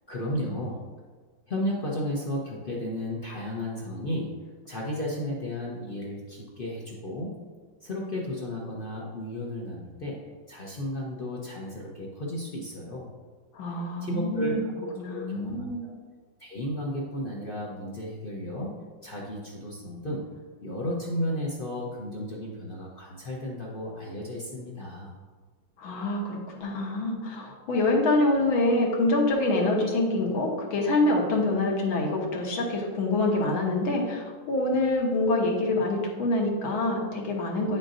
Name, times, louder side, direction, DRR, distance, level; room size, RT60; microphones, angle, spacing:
voice 1, 0.1-0.8 1.5-4.3 4.7-7.3 7.8-10.2 10.5-13.1 13.7-14.5 15.1-15.9 16.4-18.7 19.0-20.3 20.6-25.1, left 1 dB, 60° left, -3 dB, 0.5 m, -33 dB
voice 2, 13.5-14.6 15.0-15.8 25.8-37.8, left 2 dB, 80° left, -1 dB, 2.0 m, -26 dB
8.9 x 5.8 x 2.6 m, 1.5 s
omnidirectional pair, 2.2 m